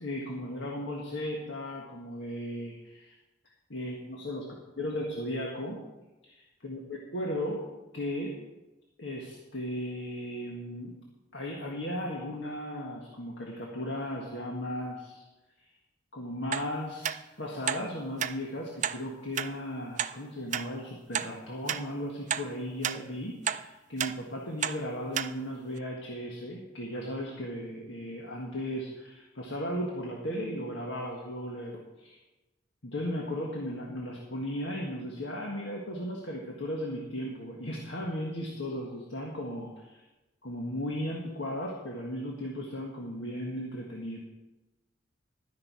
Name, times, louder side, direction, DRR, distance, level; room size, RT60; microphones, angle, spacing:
voice 1, 0.0-3.1 3.7-4.4 4.8-5.8 6.2-7.6 7.9-8.4 9.0-10.9 11.3-15.2 16.1-32.2 32.8-40.0 40.4-44.2, equal, 70° left, -1 dB, 1.6 m, -36 dB
sound 1, 16.5-16.7 17.0-17.2 17.7-17.8 18.2-18.3 18.8-19.0 19.4-19.5 20.0-20.1 20.5-20.6 21.1-21.3 21.7-21.8 22.3-22.5 22.8-23.0 23.5-23.6 24.0-24.1 24.6-24.8 25.1-25.3 25.8-25.9, right 9 dB, 40° right, 0.4 m, -30 dB
12.0 x 9.8 x 4.8 m, 1.1 s
head